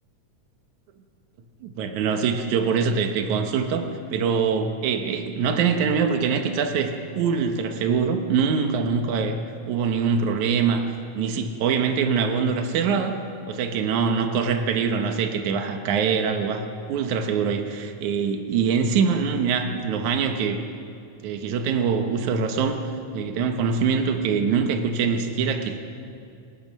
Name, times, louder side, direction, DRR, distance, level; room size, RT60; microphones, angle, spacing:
voice 1, 1.6-9.4 9.7-10.8 11.2-13.2 13.5-20.6 21.2-22.8 23.1-25.9, right 6 dB, 75° right, 5 dB, 2.6 m, -24 dB
28.5 x 19.0 x 5.5 m, 2.4 s
omnidirectional pair, 3.5 m